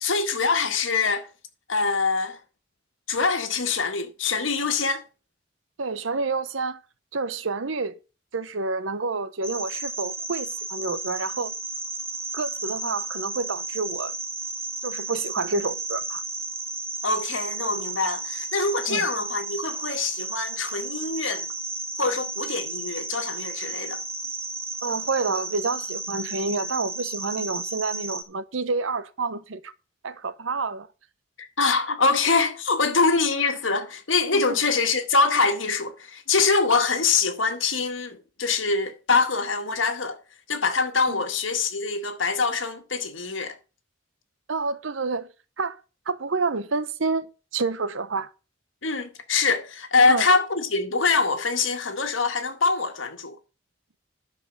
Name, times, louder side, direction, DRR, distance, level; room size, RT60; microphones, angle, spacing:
voice 1, 0.0-1.3 1.7-2.4 3.1-5.0 17.0-21.5 22.0-24.0 31.4-40.2 40.5-43.6 48.8-53.4, left 4 dB, 85° left, 1.9 m, -24 dB
voice 2, 5.8-6.8 7.1-8.0 8.3-11.5 12.3-14.1 14.8-16.2 18.9-19.1 24.8-29.7 30.0-30.9 34.3-34.4 41.1-41.2 44.5-45.3 45.6-45.8 46.1-47.3 47.5-48.3 50.1-50.3, right 3 dB, 85° right, 0.9 m, -28 dB
sound 1, 9.4-28.2, right 3 dB, 15° right, 1.3 m, -33 dB
11.5 x 5.5 x 6.4 m
head